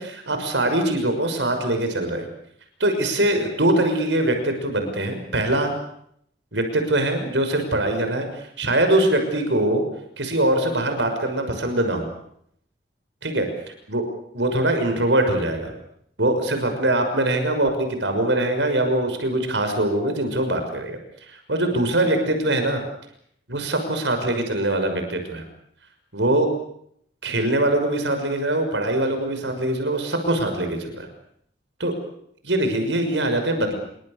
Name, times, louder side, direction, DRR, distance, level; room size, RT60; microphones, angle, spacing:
voice 1, 0.0-2.3 2.8-5.7 6.5-9.8 10.2-12.1 13.2-13.4 13.9-14.0 14.3-15.7 16.2-21.0 21.3-22.8 23.5-25.4 26.1-26.5 27.2-31.1 31.8-31.9 32.4-33.7, right 1 dB, 85° right, 6 dB, 6.1 m, -22 dB
28.5 x 25.0 x 6.7 m, 0.70 s
head